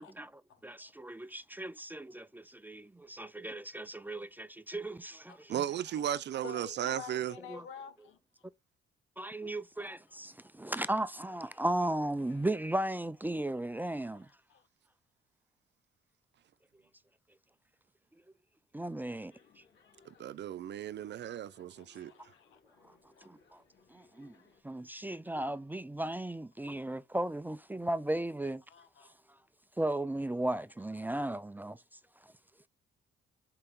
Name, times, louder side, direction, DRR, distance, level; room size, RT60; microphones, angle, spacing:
voice 1, 0.0-5.6 7.5-7.7 9.2-14.3 18.7-19.6 22.8-22.9 23.2-23.6 23.9-24.3 24.6-28.6 29.0-29.4 29.8-31.8 32.2-32.3, right 1 dB, 10° right, 0.4 m, -36 dB
voice 2, 5.5-7.3 20.1-22.1, right 10 dB, 60° right, 0.7 m, -35 dB
voice 3, 6.4-8.2 9.4-9.6 13.8-14.7 21.8-22.6 23.2-23.3 28.7-29.2, left 7 dB, 85° left, 1.7 m, -50 dB
sound 1, 19.3-24.6, left 5 dB, 65° left, 2.9 m, -65 dB
5.6 x 4.8 x 4.0 m
cardioid pair, 90°, 20 cm